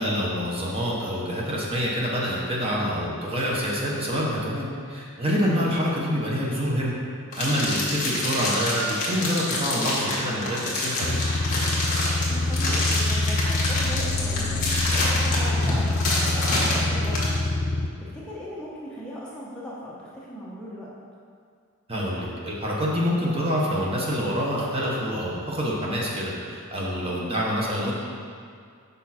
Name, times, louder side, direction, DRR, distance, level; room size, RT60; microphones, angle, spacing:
voice 1, 0.0-6.9 7.4-11.2 21.9-27.9, equal, 25° right, -4 dB, 1.0 m, -26 dB
voice 2, 5.5-5.8 12.3-20.9 27.0-27.3, equal, 5° left, -7 dB, 0.9 m, -39 dB
sound 1, 7.3-17.3, left 2 dB, 35° left, 1.5 m, -27 dB
sound 2, 11.0-17.9, left 2 dB, 70° left, 0.6 m, -25 dB
6.4 x 5.3 x 4.3 m, 2.2 s
head